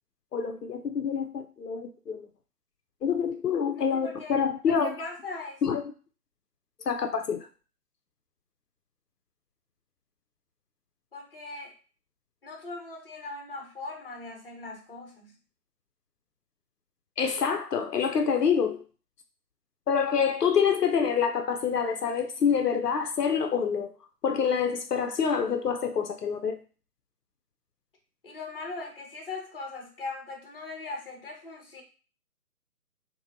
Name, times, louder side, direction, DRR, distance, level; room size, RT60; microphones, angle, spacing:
voice 1, 0.3-2.3 3.0-4.9 5.6-5.8 6.9-7.5 17.2-18.8 19.9-23.9 24.2-26.6, left 6 dB, 80° left, 0.5 m, -26 dB
voice 2, 3.8-4.4 4.7-5.6 11.1-11.7 12.4-15.4 28.2-31.8, left 3 dB, 35° left, 0.6 m, -39 dB
3.0 x 2.1 x 2.5 m
figure-of-eight pair, 145°, 48 cm